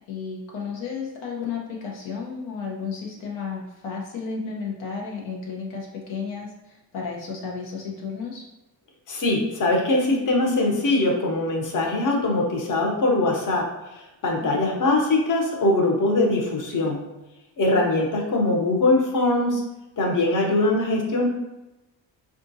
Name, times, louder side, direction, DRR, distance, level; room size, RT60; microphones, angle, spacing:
voice 1, 0.1-8.4 14.4-14.8, left 5 dB, 85° left, -2 dB, 0.8 m, -33 dB
voice 2, 9.1-13.6 13.9-17.0 17.6-19.6 20.0-21.3, left 2 dB, 40° left, 0 dB, 0.9 m, -22 dB
3.6 x 2.5 x 2.6 m, 1.0 s
cardioid pair, 80°, 46 cm